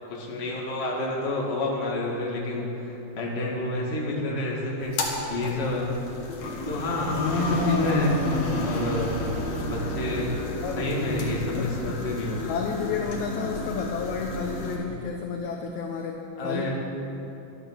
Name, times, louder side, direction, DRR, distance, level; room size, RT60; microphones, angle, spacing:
voice 1, 0.1-5.9 6.6-8.2 8.5-9.2 9.6-12.5 16.4-16.7, left 2 dB, 25° left, -3 dB, 1.4 m, -29 dB
sound 1, 4.8-14.7, left 2 dB, 55° left, 2.3 m, -30 dB
voice 2, 11.5-11.8 12.4-16.7, left 6 dB, 80° left, 2 dB, 1.7 m, -31 dB
13.0 x 11.0 x 6.3 m, 2.9 s
omnidirectional pair, 4.3 m